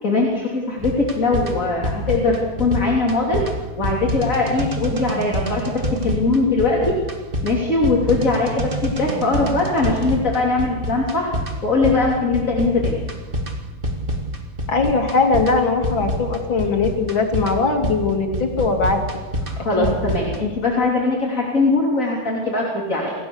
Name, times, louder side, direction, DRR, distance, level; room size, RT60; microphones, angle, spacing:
voice 1, 0.0-3.4 3.8-7.0 7.4-11.3 11.6-13.0 19.5-23.1, left 3 dB, 40° left, -2 dB, 3.6 m, -21 dB
sound 1, 0.8-20.4, right 1 dB, 30° right, 2.4 m, -27 dB
voice 2, 14.7-19.0 19.8-19.9, left 4 dB, 85° left, 3 dB, 3.4 m, -20 dB
26.5 x 17.0 x 7.1 m, 1.3 s
omnidirectional pair, 2.1 m